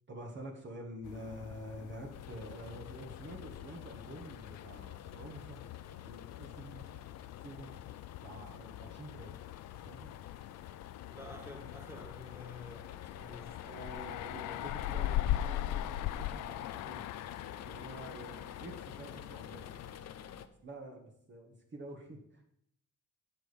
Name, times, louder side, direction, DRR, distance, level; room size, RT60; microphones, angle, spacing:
voice 1, 0.1-5.6 6.0-6.9 7.4-7.7 8.2-9.4 9.9-10.1 13.7-17.1 17.4-19.7 20.6-22.4, right 1 dB, 40° right, 2.0 m, -48 dB
sound 1, 1.0-19.9, left 13 dB, 90° left, 0.6 m, -41 dB
sound 2, 2.1-20.5, left 9 dB, 60° left, 0.8 m, -51 dB
voice 2, 11.1-13.8, left 2 dB, 10° right, 2.4 m, -49 dB
11.0 x 6.9 x 5.4 m
cardioid pair, 90°, 30 cm